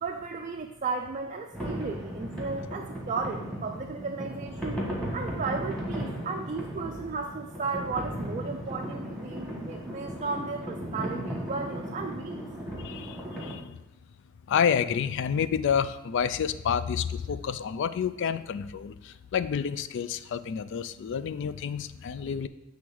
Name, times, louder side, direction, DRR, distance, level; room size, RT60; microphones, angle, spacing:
voice 1, 0.0-4.8 5.1-12.5, right 4 dB, 35° right, 3 dB, 0.4 m, -34 dB
sound 1, 1.5-13.6, right 1 dB, ahead, 1.6 m, -36 dB
voice 2, 12.8-13.6 14.5-18.9 19.3-22.5, left 7 dB, 60° left, 14 dB, 0.3 m, -29 dB
7.9 x 3.5 x 6.1 m, 0.91 s
head